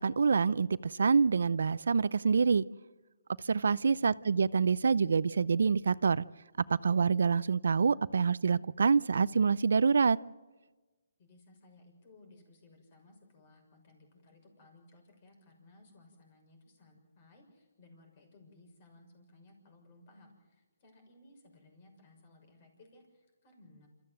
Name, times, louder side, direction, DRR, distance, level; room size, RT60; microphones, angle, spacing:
voice 1, 0.0-2.6 3.4-6.2 6.8-10.2, right 5 dB, 70° right, 19 dB, 0.6 m, -26 dB
voice 2, 3.6-4.1 11.2-23.9, left 2 dB, 35° left, 3 dB, 6.3 m, -60 dB
27.5 x 14.5 x 7.8 m, 1.2 s
hypercardioid pair, 155°, 0 cm